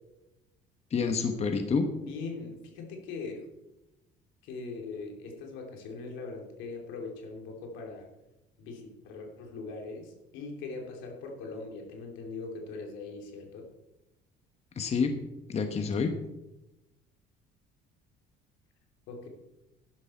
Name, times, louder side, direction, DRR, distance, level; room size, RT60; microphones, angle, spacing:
voice 1, 0.9-1.9 14.8-15.2 15.5-16.2, left 5 dB, 35° left, 6 dB, 1.1 m, -28 dB
voice 2, 2.0-3.5 4.4-8.1 8.6-13.7 19.1-19.3, left 4 dB, 85° left, 2 dB, 2.9 m, -41 dB
12.5 x 11.0 x 4.3 m, 0.98 s
cardioid pair, 120°, 19 cm